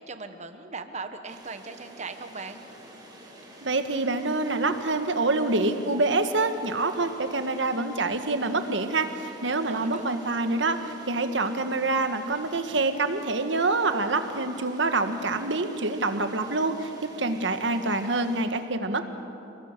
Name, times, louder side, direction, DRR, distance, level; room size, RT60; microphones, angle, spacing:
voice 1, 0.0-2.6 9.7-10.2, right 4 dB, 40° right, 8 dB, 1.3 m, -39 dB
sound 1, 1.3-18.5, right 1 dB, 25° right, 4.6 m, -48 dB
voice 2, 3.6-19.0, right 3 dB, 75° right, 8 dB, 1.6 m, -26 dB
29.5 x 20.0 x 6.7 m, 2.8 s
head